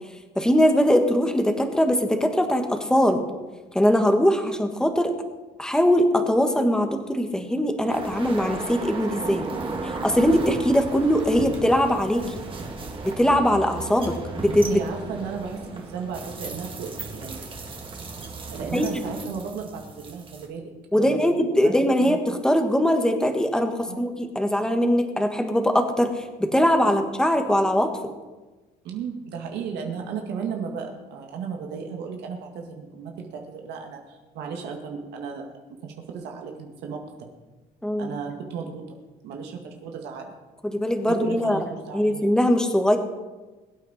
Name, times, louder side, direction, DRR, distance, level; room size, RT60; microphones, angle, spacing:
voice 1, 0.3-3.2 3.7-5.1 5.6-9.4 9.8-12.4 13.0-14.7 18.7-19.0 20.9-27.9 37.8-38.1 40.7-41.6 41.9-43.0, equal, 5° left, 5 dB, 1.6 m, -21 dB
sound 1, 7.9-20.5, right 3 dB, 30° right, 2.3 m, -35 dB
voice 2, 14.7-17.4 18.5-22.2 23.9-24.0 26.8-27.0 28.8-35.5 35.8-37.3 38.0-39.0 39.2-40.3 41.2-42.3, right 6 dB, 85° right, 2 dB, 2.0 m, -35 dB
22.0 x 8.9 x 4.3 m, 1.2 s
cardioid pair, 110°, 17 cm